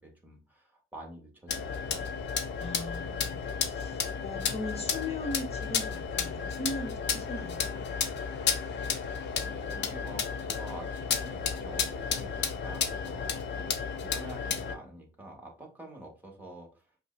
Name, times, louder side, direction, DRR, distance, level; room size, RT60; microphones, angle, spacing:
voice 1, 0.0-2.4 9.3-16.9, right 1 dB, 10° right, 0 dB, 1.4 m, -47 dB
sound 1, 1.5-14.7, left 6 dB, 60° left, 0.6 m, -33 dB
voice 2, 2.6-7.8, left 2 dB, 30° left, 3 dB, 1.1 m, -39 dB
5.1 x 2.2 x 2.5 m, 0.33 s
cardioid pair, 90°, 20 cm